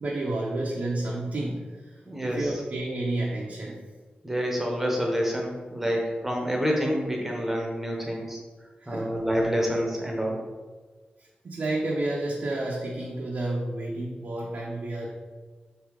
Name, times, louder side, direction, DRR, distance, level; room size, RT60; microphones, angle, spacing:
voice 1, 0.0-3.8 8.8-9.1 11.2-15.1, right 2 dB, 55° right, -4 dB, 0.6 m, -31 dB
voice 2, 2.1-2.5 4.2-8.4 8.9-10.4, equal, 10° right, -1 dB, 0.9 m, -27 dB
3.6 x 2.8 x 4.6 m, 1.4 s
wide cardioid pair, 105°, 3 cm